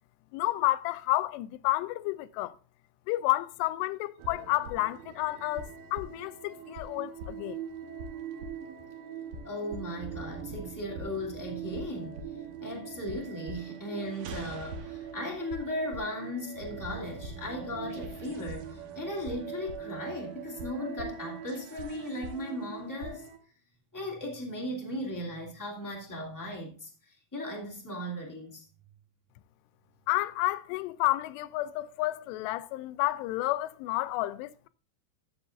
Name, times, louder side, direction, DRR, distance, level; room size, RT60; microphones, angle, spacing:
voice 1, 0.3-2.5 3.1-7.6 30.1-34.7, left 18 dB, 80° left, 2.6 m, -30 dB
sound 1, 4.2-23.4, right 5 dB, 70° right, 2.2 m, -42 dB
voice 2, 9.4-23.3 23.9-28.6, left 1 dB, 5° left, 1.5 m, -37 dB
15.0 x 6.9 x 2.6 m
omnidirectional pair, 5.1 m